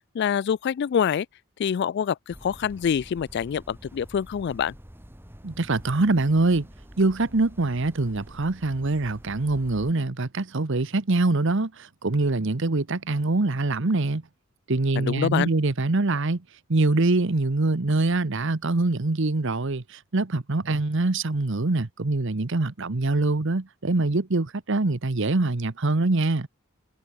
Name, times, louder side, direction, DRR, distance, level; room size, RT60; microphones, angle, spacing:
voice 1, 0.1-1.3 1.6-4.7 15.0-15.5, left 8 dB, 55° left, 0.3 m, -26 dB
sound 1, 2.3-9.9, equal, 10° right, 1.8 m, -47 dB
voice 2, 5.4-6.7 7.0-14.2 14.7-16.4 16.7-26.5, right 2 dB, 60° right, 1.0 m, -24 dB
head